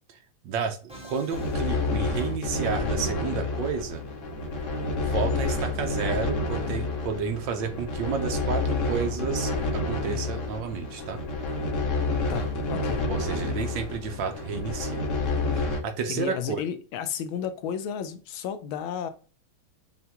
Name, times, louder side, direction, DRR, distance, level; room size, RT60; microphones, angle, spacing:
voice 1, 0.4-4.0 5.0-11.2 13.1-15.0 15.5-16.6, right 6 dB, 70° right, 1.3 m, -31 dB
Musical instrument, 0.9-3.0, right 1 dB, 5° right, 0.4 m, -50 dB
sound 1, 1.3-15.8, left 2 dB, 55° left, 0.9 m, -29 dB
voice 2, 12.3-13.0 16.1-19.1, left 8 dB, 80° left, 1.4 m, -32 dB
5.7 x 2.5 x 2.8 m
omnidirectional pair, 2.3 m